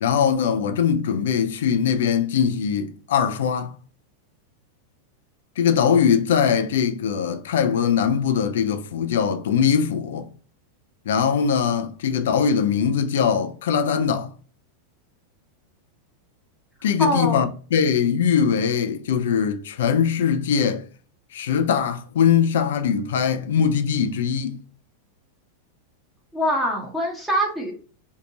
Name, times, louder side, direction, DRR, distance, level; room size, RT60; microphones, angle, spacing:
voice 1, 0.0-3.7 5.6-10.3 11.1-14.3 16.8-20.8 21.3-24.6, left 7 dB, 60° left, 0.4 m, -21 dB
voice 2, 17.0-17.4 26.3-27.7, equal, ahead, 0.7 m, -23 dB
2.7 x 2.5 x 2.7 m
figure-of-eight pair, 90°, 0 cm